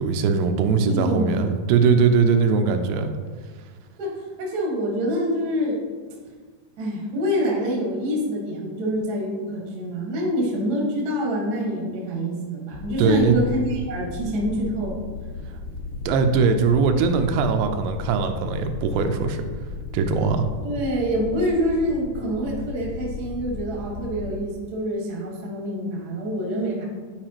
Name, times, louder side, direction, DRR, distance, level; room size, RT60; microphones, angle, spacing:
voice 1, 0.0-3.1 13.0-13.4 16.1-19.4 19.9-20.5, right 5 dB, 85° right, 6 dB, 2.7 m, -20 dB
voice 2, 0.8-1.8 2.9-3.1 4.0-5.8 6.8-15.0 20.6-26.8, equal, 60° right, -4 dB, 1.0 m, -26 dB
sound 1, 12.7-24.4, left 4 dB, 80° left, 2.4 m, -35 dB
10.5 x 4.8 x 2.9 m, 1.5 s
omnidirectional pair, 4.7 m